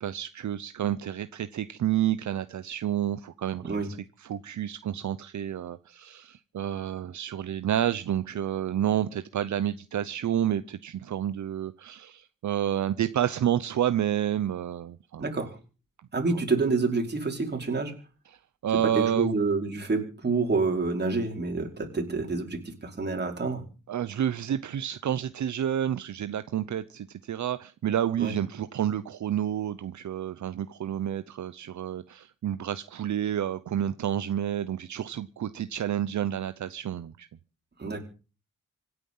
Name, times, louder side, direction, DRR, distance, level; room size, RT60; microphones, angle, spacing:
voice 1, 0.0-3.7 4.2-15.3 16.3-16.4 18.3-18.4 18.6-19.4 23.9-37.3, right 10 dB, 70° right, 0.8 m, -29 dB
voice 2, 15.2-15.6 16.1-17.9 18.8-23.6 28.2-28.3 37.8-38.0, right 3 dB, 35° right, 4.9 m, -28 dB
25.5 x 9.5 x 5.6 m
wide cardioid pair, 130°, 30 cm